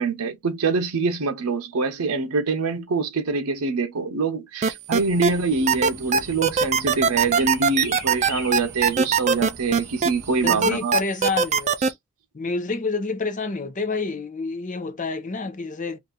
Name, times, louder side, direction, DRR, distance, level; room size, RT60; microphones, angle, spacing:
voice 1, 0.0-11.0 11.8-11.9, right 4 dB, 90° right, 0.6 m, -25 dB
sound 1, 4.6-5.3 5.7-10.1 10.5-11.9, right 6 dB, 30° right, 0.4 m, -20 dB
sound 2, 4.9-10.8, right 1 dB, 10° right, 1.0 m, -41 dB
voice 2, 10.4-11.7 12.3-16.0, left 3 dB, 35° left, 0.6 m, -28 dB
2.7 x 2.4 x 3.7 m
head